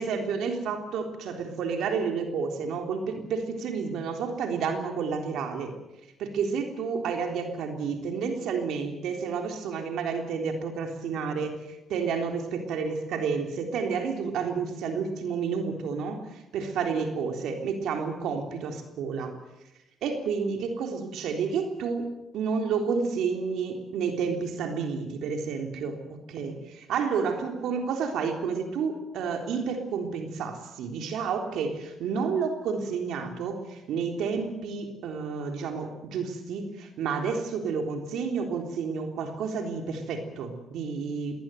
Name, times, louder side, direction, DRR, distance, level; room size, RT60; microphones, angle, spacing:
voice 1, 0.0-5.7 6.2-19.4 20.0-41.3, right 5 dB, 80° right, 4 dB, 3.6 m, -30 dB
21.5 x 18.5 x 9.3 m, 0.96 s
cardioid pair, 90°, 0 cm